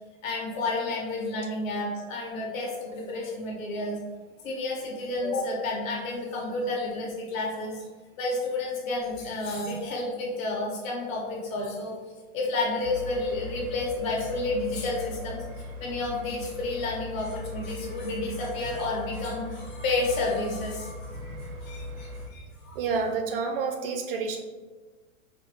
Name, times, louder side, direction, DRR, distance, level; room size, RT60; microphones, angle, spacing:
voice 1, 0.2-4.0 4.4-7.8 8.2-11.9 12.3-22.8, left 2 dB, 70° left, -2 dB, 1.5 m, -31 dB
sound 1, 12.8-22.3, left 1 dB, 85° right, 0.8 m, -39 dB
voice 2, 22.7-24.4, right 5 dB, 45° right, 4 dB, 0.4 m, -29 dB
4.9 x 2.3 x 3.1 m, 1.3 s
hypercardioid pair, 135°, 41 cm